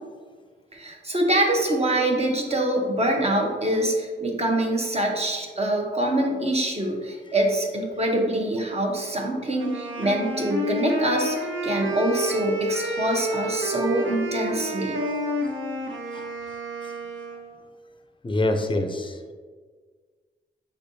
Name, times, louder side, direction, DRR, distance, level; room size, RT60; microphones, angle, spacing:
voice 1, 0.7-11.4 11.6-15.4 16.1-16.2, right 1 dB, 30° right, 1 dB, 0.8 m, -25 dB
Wind instrument woodwind instrument, 9.6-17.5, equal, 80° right, 0.7 m, -29 dB
voice 2, 18.2-19.2, left 2 dB, 25° left, 5 dB, 0.5 m, -25 dB
5.2 x 3.3 x 2.7 m, 1.5 s
cardioid pair, 55°, 20 cm